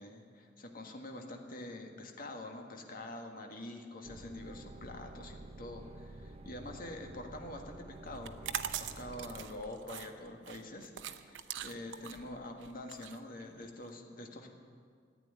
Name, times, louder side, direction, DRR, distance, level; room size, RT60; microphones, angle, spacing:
voice 1, 0.0-8.5 8.8-10.9 11.2-14.5, left 1 dB, 50° left, 3 dB, 1.7 m, -46 dB
sound 1, 4.0-9.4, right 2 dB, 35° right, 0.6 m, -50 dB
sound 2, 8.1-13.9, right 9 dB, 85° right, 0.7 m, -42 dB
14.5 x 9.1 x 9.9 m, 2.1 s
head